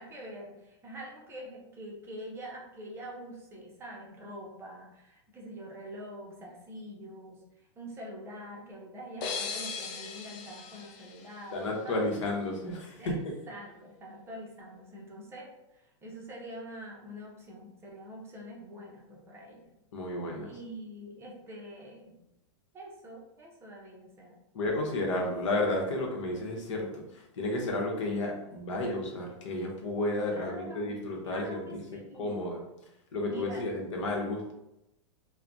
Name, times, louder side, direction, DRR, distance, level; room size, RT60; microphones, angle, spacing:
voice 1, 0.0-7.4 7.8-12.1 13.0-13.2 13.5-15.5 16.0-19.7 20.4-22.2 22.7-24.4 30.3-32.5 33.3-33.9, equal, 15° right, -2 dB, 0.6 m, -45 dB
sound 1, 9.2-12.0, left 5 dB, 40° left, 0.4 m, -39 dB
voice 2, 11.5-13.2 19.9-20.5 24.5-32.6 33.1-34.5, left 2 dB, 75° left, 0 dB, 0.8 m, -32 dB
3.2 x 2.1 x 2.5 m, 0.88 s
hypercardioid pair, 140°, 16 cm